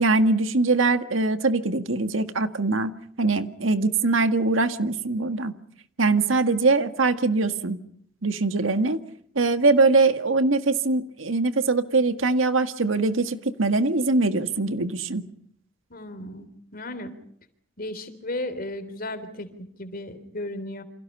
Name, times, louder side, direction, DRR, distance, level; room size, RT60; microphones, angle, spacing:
voice 1, 0.0-5.5 6.0-7.8 8.2-9.0 9.4-15.3, right 3 dB, 80° right, 9 dB, 1.8 m, -22 dB
voice 2, 15.9-17.1 17.8-20.8, left 1 dB, 50° left, 11 dB, 3.5 m, -35 dB
29.0 x 26.5 x 5.5 m, 0.64 s
head